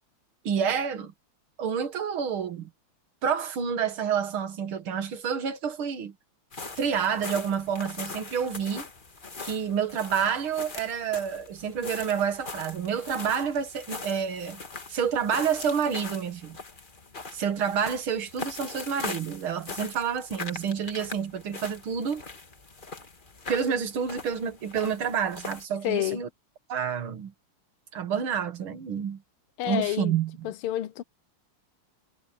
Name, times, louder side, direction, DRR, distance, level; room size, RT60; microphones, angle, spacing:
voice 1, 0.4-1.1 1.6-2.7 3.2-6.1 6.8-8.9 9.4-14.6 14.9-16.6 17.3-22.2 23.5-26.3 26.7-27.3 27.9-29.2 29.6-30.5, right 7 dB, 70° right, 2.4 m, -29 dB
sound 1, 6.5-25.7, left 3 dB, 25° left, 1.5 m, -41 dB
voice 2, 25.8-26.2 29.6-30.2 30.4-31.0, left 14 dB, 90° left, 1.7 m, -29 dB
omnidirectional pair, 2.4 m